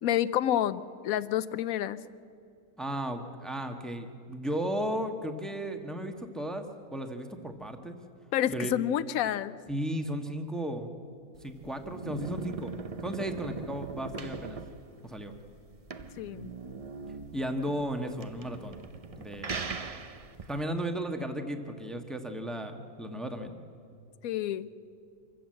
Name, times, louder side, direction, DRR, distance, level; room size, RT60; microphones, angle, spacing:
voice 1, 0.0-2.0 8.3-9.6 16.2-16.5 24.2-24.7, left 11 dB, 70° left, 15 dB, 1.1 m, -29 dB
voice 2, 2.8-6.7 6.9-8.0 8.5-8.7 9.7-10.9 11.4-12.7 13.0-14.6 15.0-15.3 17.3-18.8 19.2-19.6 20.5-23.5, equal, ahead, 4 dB, 1.2 m, -35 dB
sound 1, 11.3-20.6, right 4 dB, 40° right, 0.5 m, -41 dB
25.5 x 15.0 x 7.7 m, 2.5 s
omnidirectional pair, 1.6 m